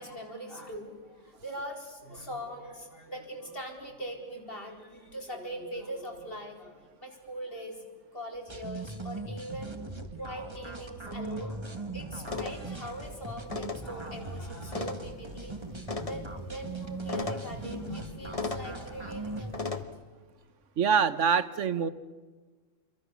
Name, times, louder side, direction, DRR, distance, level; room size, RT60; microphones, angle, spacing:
voice 1, 0.0-7.8 8.1-9.8 10.1-11.6 11.9-15.5 16.0-19.9 21.7-21.9, right 1 dB, 45° left, 1 dB, 4.7 m, -41 dB
sound 1, 8.5-19.5, right 2 dB, 20° right, 1.8 m, -40 dB
sound 2, 12.2-19.8, left 3 dB, 30° left, 1.5 m, -39 dB
voice 2, 20.8-21.9, right 6 dB, 70° right, 14 dB, 1.3 m, -25 dB
28.5 x 23.5 x 7.1 m, 1.4 s
omnidirectional pair, 1.3 m